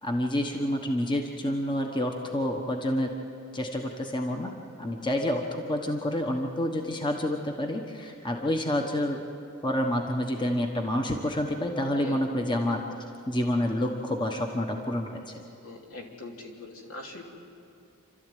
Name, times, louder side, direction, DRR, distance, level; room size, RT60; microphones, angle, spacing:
voice 1, 0.0-3.1 3.5-4.5 4.8-9.2 9.6-15.2, left 1 dB, 20° left, 3 dB, 1.2 m, -28 dB
voice 2, 15.6-17.2, left 3 dB, 75° left, 0 dB, 3.2 m, -42 dB
29.0 x 13.0 x 9.3 m, 2.6 s
head